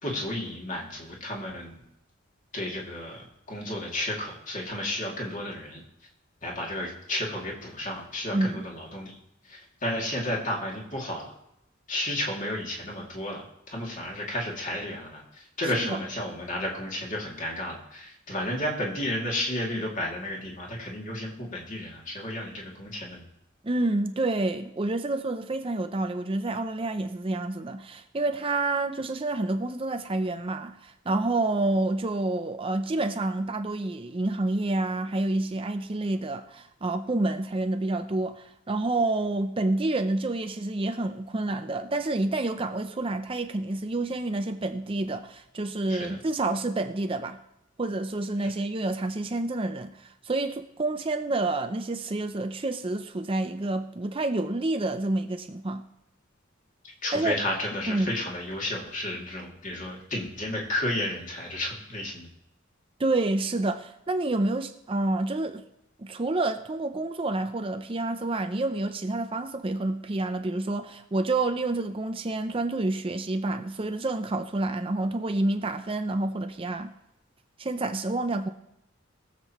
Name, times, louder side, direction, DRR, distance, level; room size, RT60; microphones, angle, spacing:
voice 1, 0.0-1.8 2.5-5.8 6.4-9.2 9.4-11.3 11.9-23.3 45.9-46.2 56.8-62.3, left 1 dB, 40° left, 2.5 m, -32 dB
voice 2, 8.3-8.6 15.9-16.0 23.6-47.4 47.8-55.8 57.1-57.4 57.9-58.1 63.0-65.6 66.0-76.9 77.6-78.5, right 2 dB, 25° right, 0.5 m, -28 dB
22.0 x 7.5 x 3.0 m
head